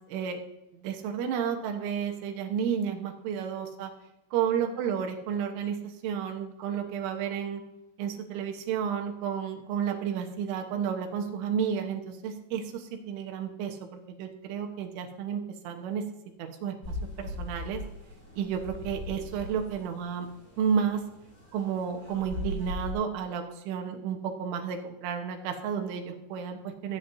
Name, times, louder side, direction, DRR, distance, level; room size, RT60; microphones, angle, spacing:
voice 1, 0.7-3.9 4.3-5.8 6.0-7.6 8.0-16.0 16.4-16.8 17.2-17.8 18.4-20.3 20.6-21.0 21.5-27.0, right 7 dB, 90° right, 4 dB, 3.7 m, -31 dB
sound 1, 16.8-22.9, left 2 dB, 20° left, 3.2 m, -39 dB
19.5 x 8.9 x 2.7 m, 0.94 s
omnidirectional pair, 5.4 m